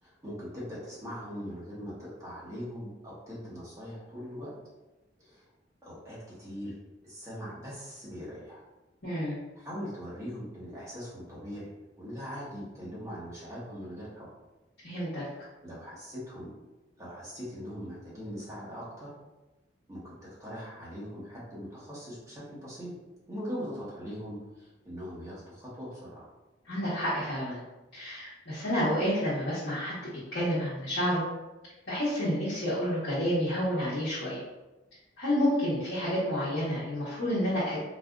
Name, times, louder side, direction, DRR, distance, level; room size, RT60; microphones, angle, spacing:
voice 1, 0.0-4.5 5.2-5.4 5.8-6.7 7.0-8.6 9.5-11.7 12.0-14.3 15.3-16.5 17.0-19.1 19.9-20.1 20.4-22.9 23.3-26.3, equal, 20° right, -8 dB, 1.2 m, -41 dB
voice 2, 9.0-9.4 14.8-15.2 26.7-27.6 27.9-29.9 30.3-31.2 31.9-34.4 35.2-37.8, equal, 70° left, -11 dB, 1.1 m, -29 dB
4.1 x 2.5 x 2.4 m, 1.1 s
head